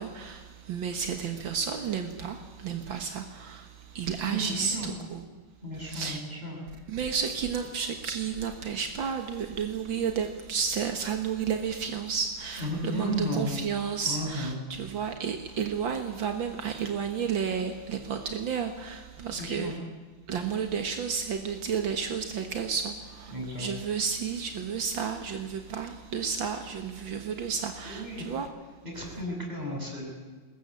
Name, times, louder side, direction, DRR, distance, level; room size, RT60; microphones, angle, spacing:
voice 1, 0.0-3.7 4.0-5.2 5.8-6.2 6.9-19.7 20.3-28.5, right 6 dB, 75° right, 6 dB, 2.2 m, -32 dB
voice 2, 4.2-4.9 5.6-6.6 12.6-13.6 14.0-14.6 19.3-19.8 23.3-23.7 27.8-28.3 28.9-30.1, right 1 dB, 20° right, -1 dB, 7.0 m, -33 dB
21.5 x 20.5 x 8.4 m, 1.4 s
omnidirectional pair, 2.1 m